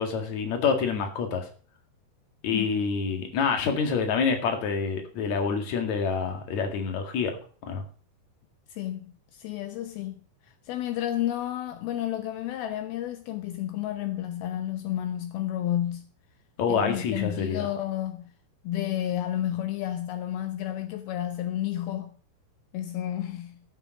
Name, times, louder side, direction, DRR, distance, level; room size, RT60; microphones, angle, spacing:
voice 1, 0.0-1.4 2.4-7.3 7.7-7.8 16.6-17.7, left 5 dB, 50° left, 2.6 m, -27 dB
voice 2, 8.7-10.2 10.4-16.1 16.7-18.3 18.6-22.1 22.7-23.6, left 12 dB, 80° left, 2.2 m, -31 dB
15.5 x 7.3 x 5.3 m
omnidirectional pair, 5.5 m